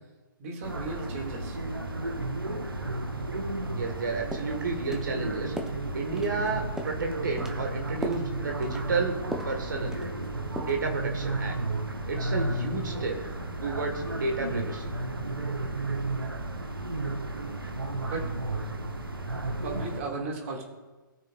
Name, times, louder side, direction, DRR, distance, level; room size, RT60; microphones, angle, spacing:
voice 1, 0.4-1.6 18.0-18.3 19.6-20.6, right 3 dB, 40° right, 1 dB, 2.1 m, -35 dB
sound 1, 0.6-20.0, right 2 dB, 85° right, 1.1 m, -33 dB
voice 2, 3.7-5.5 5.9-9.2 9.4-10.0 10.6-11.6 12.1-13.2 13.6-14.9, right 4 dB, 60° right, 3 dB, 1.6 m, -31 dB
sound 2, 4.0-4.1 4.3-4.5 4.9-5.1 5.6-5.8 6.2-6.5 6.8-7.0 7.4-7.6 8.0-8.3 8.6-8.9 9.3-9.6 9.9-10.3 10.6-10.8, right 1 dB, 5° right, 0.8 m, -37 dB
18.0 x 6.4 x 2.4 m, 1.2 s
figure-of-eight pair, 120°, 12 cm